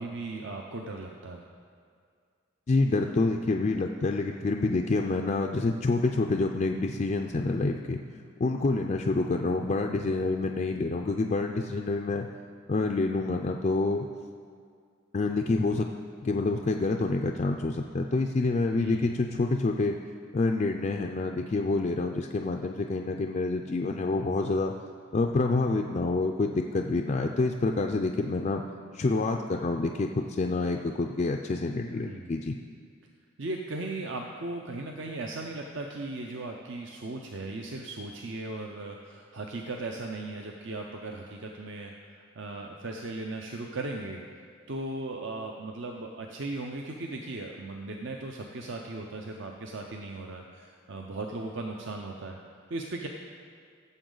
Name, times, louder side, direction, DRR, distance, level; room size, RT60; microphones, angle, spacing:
voice 1, 0.0-1.4 18.8-19.1 32.1-32.3 33.4-44.2 44.7-52.4 52.7-53.1, right 2 dB, 60° right, 1 dB, 0.6 m, -37 dB
voice 2, 2.7-8.0 8.4-12.3 12.7-14.1 15.1-15.9 16.2-20.0 20.3-24.7 25.1-28.6 28.9-32.6, left 3 dB, 35° left, 2 dB, 0.4 m, -27 dB
16.5 x 7.1 x 3.9 m, 2.1 s
head